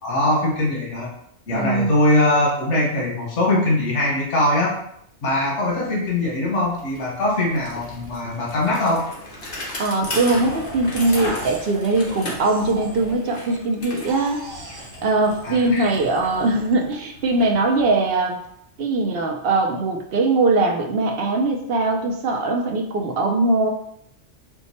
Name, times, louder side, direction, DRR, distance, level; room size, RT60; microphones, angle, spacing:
voice 1, 0.0-1.1 1.5-4.8 5.2-9.1 15.4-15.9, left 1 dB, 80° left, -3 dB, 1.3 m, -21 dB
voice 2, 1.5-1.9 9.8-14.4 15.0-18.4 18.8-23.7, right 2 dB, 60° right, 2 dB, 0.8 m, -21 dB
Bicycle, 5.6-18.6, left 1 dB, 50° left, 1.1 m, -37 dB
sound 1, 10.5-13.8 14.1-17.0, right 1 dB, 35° right, 0.4 m, -39 dB
4.5 x 2.3 x 4.1 m, 0.72 s
omnidirectional pair, 1.2 m